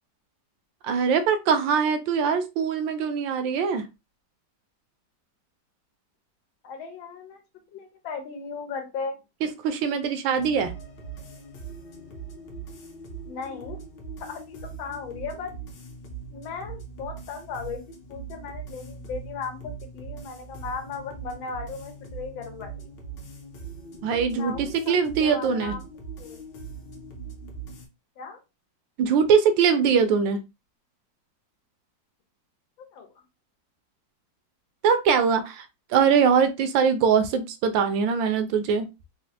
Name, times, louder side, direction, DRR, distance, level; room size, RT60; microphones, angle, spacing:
voice 1, 0.8-3.8 9.4-10.7 24.0-25.7 29.0-30.4 34.8-35.7 35.9-38.9, right 6 dB, 80° right, 9 dB, 1.3 m, -22 dB
voice 2, 6.6-7.4 7.7-9.2 13.3-13.8 14.2-15.6 16.3-17.8 18.1-22.9 24.3-24.9 25.2-25.9 26.2-26.4 28.2-28.4 32.8-33.2, left 5 dB, 90° left, 4 dB, 1.6 m, -36 dB
sound 1, 10.3-27.9, right 4 dB, 70° left, 1.4 m, -41 dB
4.1 x 2.0 x 2.7 m, 0.25 s
omnidirectional pair, 2.1 m